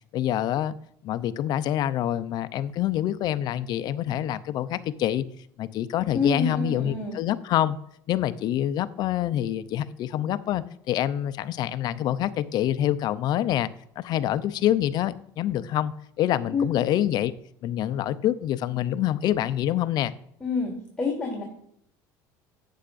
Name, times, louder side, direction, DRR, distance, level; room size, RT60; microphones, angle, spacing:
voice 1, 0.1-0.8 1.0-5.2 5.6-7.8 8.1-13.7 14.0-17.3 17.6-20.1, left 12 dB, 55° left, 14 dB, 0.6 m, -26 dB
voice 2, 6.1-7.2 16.5-16.7 20.4-21.4, left 4 dB, 10° left, -5 dB, 3.1 m, -27 dB
11.5 x 8.5 x 2.6 m, 0.67 s
cardioid pair, 120°, 9 cm